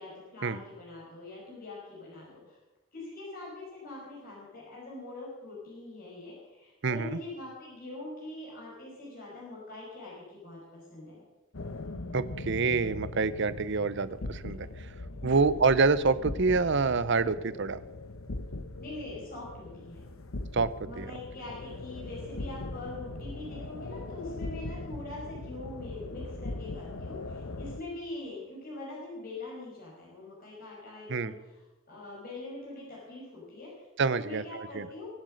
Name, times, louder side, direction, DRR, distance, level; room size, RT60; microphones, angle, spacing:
voice 1, 0.0-2.6 2.9-11.2 15.2-15.5 18.8-20.0 20.8-31.5 31.9-33.9 34.1-35.1, left 2 dB, 45° left, -5 dB, 5.3 m, -43 dB
voice 2, 6.8-7.2 12.1-14.9 15.2-17.8 20.5-21.1 31.1-31.3 34.0-34.9, right 4 dB, 60° right, 16 dB, 0.7 m, -27 dB
sound 1, 11.5-27.8, left 2 dB, 85° left, 1.1 m, -40 dB
23.0 x 8.0 x 6.4 m, 1.0 s
head